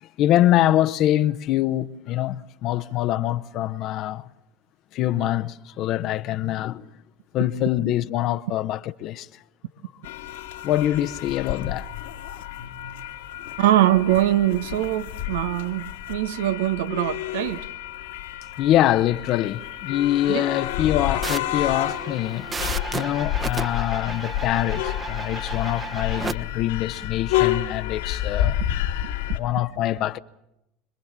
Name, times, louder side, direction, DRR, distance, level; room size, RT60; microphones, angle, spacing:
voice 1, 0.0-4.3 4.9-6.8 7.3-9.3 10.6-11.9 18.6-22.5 22.9-28.6 29.3-30.2, left 13 dB, 55° left, 0.9 m, -24 dB
sound 1, 10.0-29.4, left 12 dB, 80° left, 2.0 m, -30 dB
voice 2, 13.6-17.6 20.3-20.4, right 13 dB, 80° right, 1.2 m, -22 dB
sound 2, 21.2-26.3, right 4 dB, 25° right, 1.2 m, -33 dB
25.5 x 21.0 x 7.4 m
hypercardioid pair, 85°, 0 cm